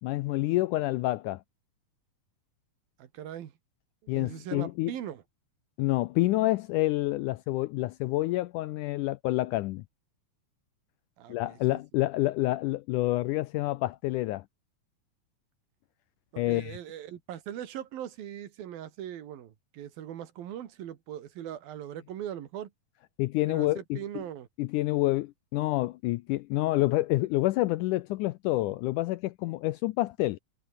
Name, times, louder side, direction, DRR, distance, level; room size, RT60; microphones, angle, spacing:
voice 1, 0.0-1.4 4.1-4.9 5.8-9.8 11.3-14.4 16.4-16.8 23.2-24.0 24.6-30.4, left 18 dB, 80° left, 1.9 m, -28 dB
voice 2, 3.0-3.5 4.0-5.2 11.2-11.8 16.3-22.7 23.5-24.5, right 11 dB, 80° right, 3.7 m, -40 dB
omnidirectional pair, 4.1 m